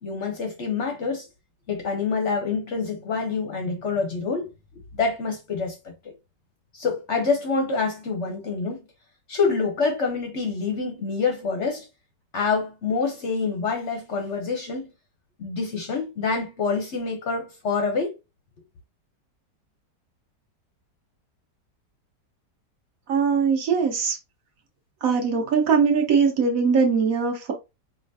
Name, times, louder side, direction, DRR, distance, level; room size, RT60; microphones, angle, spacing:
voice 1, 0.0-1.3 1.7-4.5 4.9-6.1 6.7-8.8 9.3-11.9 12.3-14.8 15.4-18.1, left 4 dB, 55° left, 0.9 m, -26 dB
voice 2, 23.1-24.2 25.0-27.5, right 5 dB, 55° right, 1.3 m, -21 dB
4.9 x 2.4 x 2.7 m
omnidirectional pair, 1.9 m